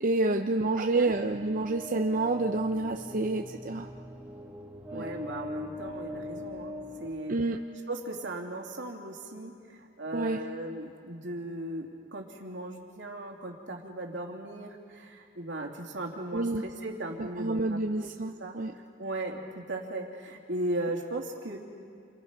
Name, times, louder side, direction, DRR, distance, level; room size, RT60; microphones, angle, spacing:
voice 1, 0.0-3.9 4.9-5.1 7.3-7.6 10.1-10.4 16.3-16.6 17.2-18.7, right 2 dB, 45° right, 4 dB, 0.7 m, -28 dB
voice 2, 0.8-1.1 4.9-6.7 7.0-7.4 7.9-18.1 18.4-18.6 19.0-21.6, right 1 dB, 75° right, 1 dB, 2.7 m, -37 dB
sound 1, 1.1-8.0, left 1 dB, 10° right, 2.0 m, -42 dB
29.0 x 24.0 x 5.3 m, 2.5 s
head